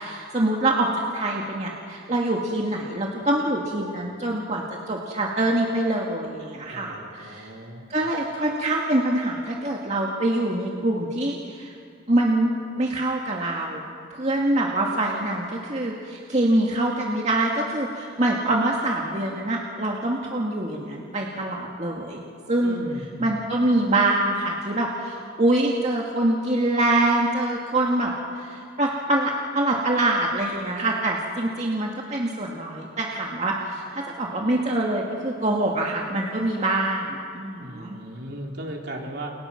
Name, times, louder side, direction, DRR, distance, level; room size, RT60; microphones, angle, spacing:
voice 1, 0.0-7.5 7.9-11.7 12.1-12.5 12.8-13.8 14.1-22.2 22.5-22.8 23.2-38.0, right 1 dB, 35° right, -1 dB, 2.2 m, -25 dB
voice 2, 6.7-7.9 22.6-23.5 37.6-39.3, right 1 dB, 55° right, 0 dB, 3.9 m, -37 dB
30.0 x 29.5 x 6.0 m, 2.5 s
head